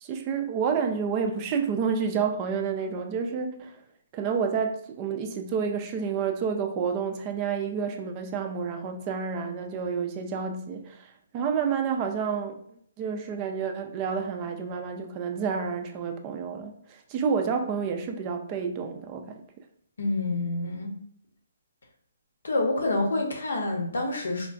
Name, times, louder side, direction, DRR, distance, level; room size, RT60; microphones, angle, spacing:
voice 1, 0.0-3.8 4.1-12.6 13.0-19.4, right 6 dB, 25° right, 0.3 m, -29 dB
voice 2, 20.0-21.0 22.4-24.5, left 2 dB, 80° left, 0.8 m, -27 dB
3.6 x 2.2 x 2.5 m
hypercardioid pair, 155°, 0 cm